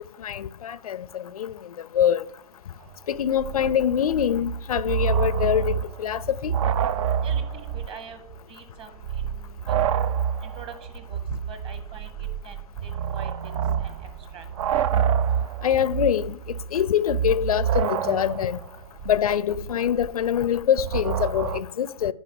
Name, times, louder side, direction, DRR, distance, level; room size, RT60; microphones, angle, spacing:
voice 1, 0.2-1.6 1.9-2.2 3.1-6.5 15.6-16.4 16.7-18.6 19.1-22.1, left 9 dB, 85° left, 0.5 m, -24 dB
sound 1, 2.9-3.0 3.2-8.0 8.3-8.4 8.9-21.6, right 8 dB, 65° right, 0.6 m, -27 dB
voice 2, 7.2-8.2 8.5-9.8 10.4-11.2 11.5-14.5, right 6 dB, 30° right, 1.7 m, -45 dB
9.2 x 5.5 x 7.1 m
hypercardioid pair, 115°, 18 cm